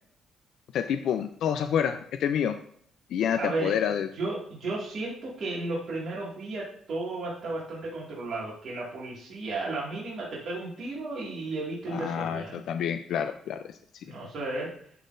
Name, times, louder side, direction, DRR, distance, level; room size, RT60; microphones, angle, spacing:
voice 1, 0.7-2.6 3.1-4.1 11.9-13.6, left 8 dB, 60° left, 7 dB, 0.4 m, -28 dB
voice 2, 3.4-3.8 4.1-12.6 14.0-14.7, right 2 dB, 45° right, -7 dB, 2.0 m, -34 dB
11.5 x 3.9 x 2.6 m, 0.63 s
cardioid pair, 170°, 0 cm